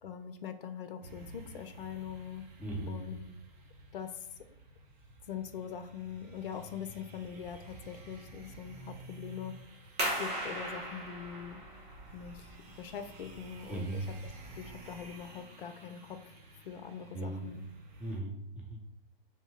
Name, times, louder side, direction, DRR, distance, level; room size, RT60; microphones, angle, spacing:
voice 1, 0.0-2.4 2.9-3.3 3.9-4.3 5.3-9.5 10.2-11.6 12.1-14.3 14.6-16.2 16.5-17.7, left 8 dB, 65° left, 9 dB, 0.5 m, -43 dB
sound 1, 1.0-18.2, right 2 dB, 40° right, 0.9 m, -53 dB
voice 2, 2.6-3.0 13.7-14.1 17.1-17.5 18.0-18.8, right 2 dB, 5° right, -2 dB, 0.6 m, -38 dB
sound 2, 10.0-15.3, right 1 dB, 20° right, 1.1 m, -39 dB
3.4 x 2.7 x 4.4 m, 0.81 s
figure-of-eight pair, 110°, 29 cm